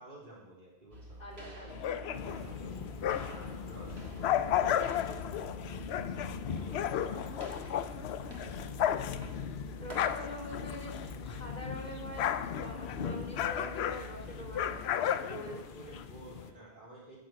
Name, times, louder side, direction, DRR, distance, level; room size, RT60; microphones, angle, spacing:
voice 1, 0.0-1.2 2.1-2.8 3.2-6.3 6.7-8.8 15.3-17.2, right 2 dB, 55° right, -6 dB, 3.7 m, -52 dB
sound 1, 0.9-14.9, right 1 dB, 85° right, 1.8 m, -48 dB
voice 2, 1.2-2.3 9.8-14.8 15.2-15.6, left 1 dB, 40° left, -1 dB, 2.9 m, -45 dB
sound 2, 1.7-3.5 3.9-11.5 11.8-16.0, left 10 dB, 85° left, 0.8 m, -34 dB
sound 3, 2.1-16.5, left 7 dB, 60° left, 0.9 m, -42 dB
9.1 x 6.8 x 7.6 m, 0.91 s
omnidirectional pair, 1.0 m